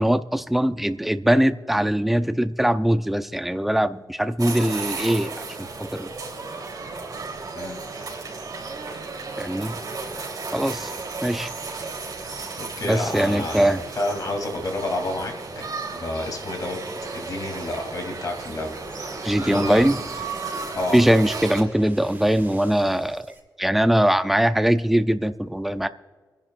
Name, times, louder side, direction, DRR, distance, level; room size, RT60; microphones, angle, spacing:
voice 1, 0.0-6.1 9.4-9.8 10.5-10.9 11.2-11.5 12.8-13.8 19.2-20.0 20.9-23.3 23.6-25.9, right 1 dB, 5° right, 11 dB, 0.4 m, -21 dB
sound 1, 4.4-21.6, right 4 dB, 65° right, 3.3 m, -34 dB
voice 2, 12.6-13.7 13.9-16.8 17.1-18.8 19.4-19.9 20.7-21.0, left 2 dB, 60° left, 2 dB, 2.8 m, -30 dB
sound 2, 18.4-23.4, right 2 dB, 30° right, 1.7 m, -42 dB
27.5 x 10.5 x 2.5 m, 1.4 s
wide cardioid pair, 150°, 7 cm